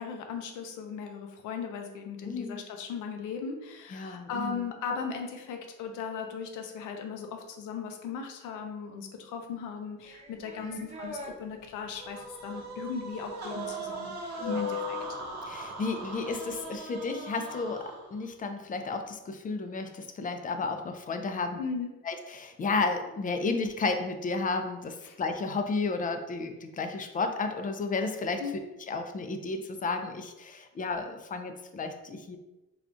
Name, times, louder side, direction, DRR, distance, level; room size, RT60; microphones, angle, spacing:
voice 1, 0.0-15.0 21.6-21.9 25.0-25.2 28.4-28.6, left 6 dB, 90° left, 4 dB, 0.6 m, -38 dB
voice 2, 2.2-2.6 3.9-4.7 10.6-10.8 14.4-14.7 15.5-17.8 18.1-21.6 22.0-28.4 28.9-32.4, left 3 dB, 30° left, 6 dB, 0.4 m, -32 dB
sound 1, 10.1-11.3 13.5-15.1, left 3 dB, 20° right, 0.6 m, -38 dB
sound 2, 11.9-18.3, right 2 dB, 60° right, 0.8 m, -40 dB
3.4 x 2.4 x 2.5 m, 1.0 s
cardioid pair, 90°, 30 cm